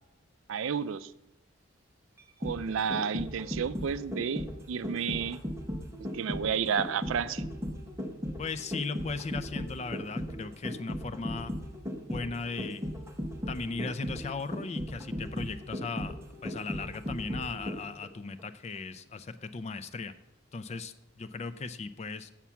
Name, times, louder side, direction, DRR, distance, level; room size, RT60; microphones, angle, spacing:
voice 1, 0.5-1.1 2.4-5.4 6.1-7.4, right 7 dB, 70° right, 14 dB, 0.4 m, -31 dB
sound 1, 2.2-18.1 18.4-18.5, equal, 15° right, 0.9 m, -36 dB
voice 2, 8.4-11.5 12.1-12.8 13.5-20.1 20.5-22.3, left 4 dB, 30° left, 12 dB, 0.4 m, -37 dB
7.3 x 7.1 x 5.6 m, 0.87 s
head